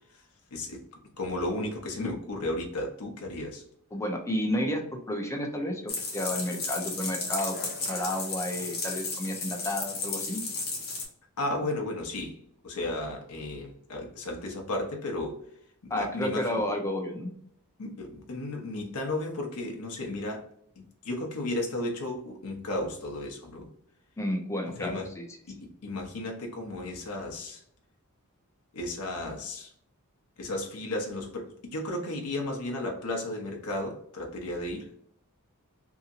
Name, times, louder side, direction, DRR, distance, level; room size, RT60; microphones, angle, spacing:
voice 1, 0.5-0.8 1.2-3.6 11.4-12.4 12.6-15.4 15.8-16.6 17.8-20.5 20.8-23.7 24.6-25.1 25.5-27.6 28.7-29.7 30.4-34.9, left 1 dB, 80° left, 1 dB, 0.6 m, -34 dB
voice 2, 3.9-10.4 15.9-17.3 24.2-25.2, left 1 dB, 15° left, 2 dB, 0.5 m, -31 dB
sound 1, 5.9-11.1, left 4 dB, 45° left, 0.9 m, -34 dB
2.8 x 2.6 x 2.4 m, 0.67 s
head